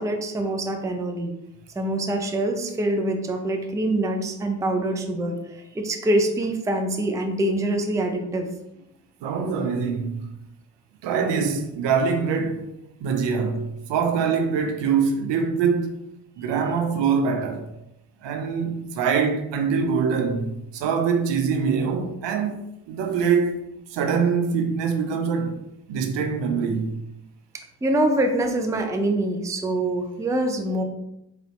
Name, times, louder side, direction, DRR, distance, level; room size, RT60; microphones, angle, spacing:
voice 1, 0.0-1.3 1.8-8.5 27.8-30.8, right 1 dB, 5° right, 0.5 m, -25 dB
voice 2, 9.2-10.3 11.0-12.7 13.0-16.0 16.4-17.7 18.2-22.6 22.9-23.6 23.9-25.6 25.9-27.0, right 6 dB, 60° right, 0.7 m, -24 dB
4.0 x 2.7 x 3.0 m
hypercardioid pair, 40°, 48 cm